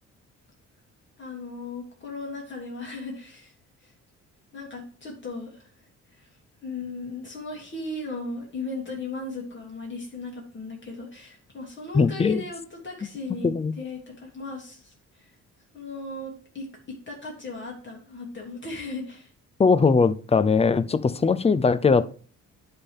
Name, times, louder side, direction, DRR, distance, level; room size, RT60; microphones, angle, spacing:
voice 1, 1.2-3.5 3.8-3.9 4.5-6.3 6.6-15.3 15.7-19.3, left 3 dB, 40° left, -1 dB, 2.6 m, -37 dB
voice 2, 11.9-12.4 13.4-13.7 19.6-22.0, left 5 dB, 20° left, 15 dB, 0.5 m, -20 dB
9.8 x 3.6 x 5.5 m, 0.41 s
cardioid pair, 90°, 30 cm